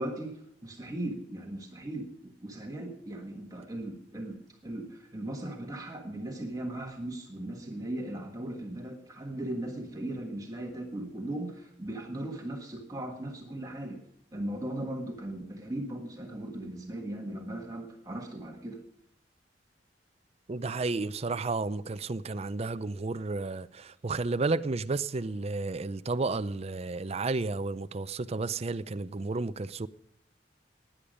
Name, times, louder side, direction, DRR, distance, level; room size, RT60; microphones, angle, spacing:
voice 1, 0.0-14.0 14.3-18.8, right 1 dB, 20° right, 1.5 m, -38 dB
voice 2, 20.5-29.9, right 3 dB, 35° right, 0.5 m, -32 dB
17.0 x 10.5 x 5.1 m
head